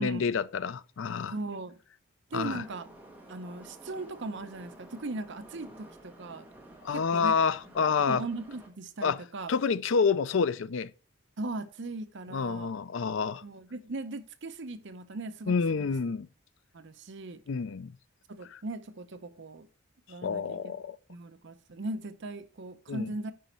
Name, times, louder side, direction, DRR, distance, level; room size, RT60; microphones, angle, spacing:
voice 1, 0.0-1.3 2.3-2.6 6.8-8.2 9.0-9.2 9.5-10.9 12.3-13.4 15.5-16.3 17.5-17.9 20.2-21.0 22.9-23.1, left 5 dB, 65° left, 0.4 m, -28 dB
voice 2, 1.3-1.8 2.3-2.9 3.3-6.5 6.9-7.4 7.8-9.5 11.4-12.7 13.4-15.9 16.7-17.4 18.3-19.7 20.1-20.6 21.1-23.3, right 2 dB, 60° right, 0.7 m, -38 dB
Subway metro underground, 2.3-8.7, right 1 dB, 10° right, 1.4 m, -52 dB
9.3 x 5.1 x 4.4 m
head